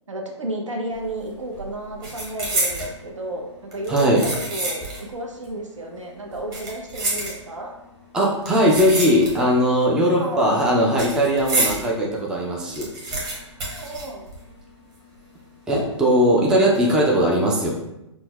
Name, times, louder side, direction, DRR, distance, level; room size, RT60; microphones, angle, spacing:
voice 1, 0.1-7.7 10.1-10.5 13.7-14.3, right 1 dB, 75° right, 1 dB, 0.7 m, -32 dB
sound 1, 1.0-1.3 1.5-2.9 3.7-5.1 5.4-5.5 6.3-7.7 8.4-9.6 9.9-11.9 12.3-12.4 12.5-14.7 14.9-15.0 15.7-16.1 16.6-16.8, right 2 dB, 25° right, 0.9 m, -28 dB
voice 2, 3.9-4.2 8.1-13.5 15.7-17.7, equal, 5° right, -2 dB, 0.3 m, -19 dB
5.4 x 2.1 x 2.3 m, 0.91 s
figure-of-eight pair, 120°, 16 cm